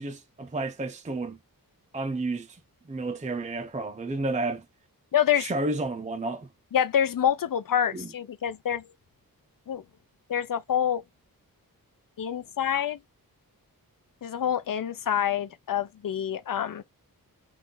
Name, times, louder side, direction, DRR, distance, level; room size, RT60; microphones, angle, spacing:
voice 1, 0.0-1.4 1.9-2.6 2.9-4.6 5.3-6.5 7.9-8.1, right 2 dB, 20° right, 0.5 m, -31 dB
voice 2, 5.1-5.5 6.7-8.9 9.7-9.8 10.3-11.0 12.2-13.0 14.2-16.8, left 9 dB, 60° left, 0.6 m, -26 dB
4.0 x 2.4 x 3.7 m
wide cardioid pair, 125°, 37 cm